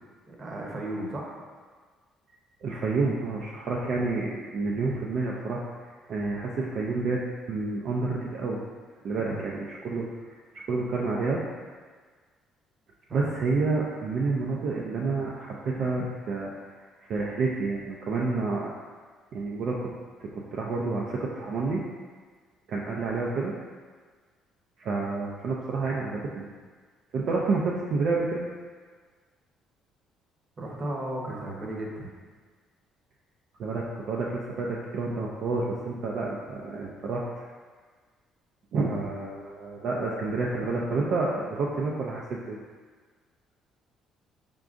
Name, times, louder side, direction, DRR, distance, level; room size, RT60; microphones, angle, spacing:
voice 1, 0.3-1.3 9.3-9.4 13.1-13.3 30.6-32.1, right 1 dB, 35° right, -2 dB, 0.9 m, -35 dB
voice 2, 2.6-7.2 7.5-8.6 9.0-11.4 13.1-16.7 17.1-18.7 19.3-19.9 20.2-21.8 22.7-23.5 24.8-26.5 27.1-28.5 33.6-37.3 38.7-42.6, right 3 dB, 55° right, -3 dB, 0.4 m, -29 dB
4.6 x 3.6 x 2.5 m, 1.5 s
cardioid pair, 120°, 0 cm